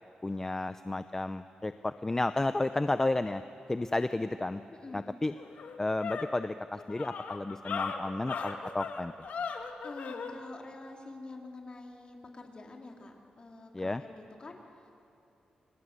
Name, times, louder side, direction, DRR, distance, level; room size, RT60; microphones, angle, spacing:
voice 1, 0.2-3.4 3.7-4.6 4.9-5.3 5.8-9.1 13.7-14.0, left 2 dB, 20° left, 11 dB, 0.6 m, -32 dB
voice 2, 4.7-5.0 9.8-14.9, left 2 dB, 40° left, 1 dB, 3.6 m, -47 dB
sound 1, 4.9-5.0 5.4-10.3, left 5 dB, 80° left, 2.0 m, -38 dB
30.0 x 24.0 x 8.2 m, 2.9 s
wide cardioid pair, 115°, 3 cm